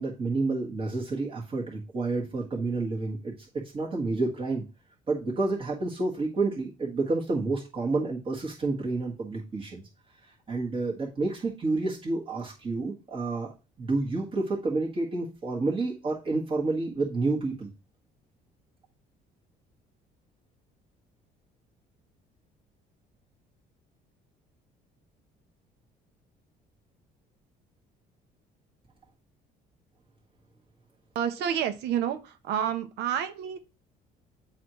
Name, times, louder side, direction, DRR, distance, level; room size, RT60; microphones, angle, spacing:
voice 1, 0.0-3.3 3.7-4.6 5.1-9.8 10.5-13.5 13.8-17.7, right 3 dB, 30° right, -3 dB, 1.5 m, -29 dB
voice 2, 31.1-33.6, right 9 dB, 80° right, 9 dB, 0.8 m, -29 dB
8.9 x 4.1 x 3.0 m, 0.31 s
cardioid pair, 110°, 17 cm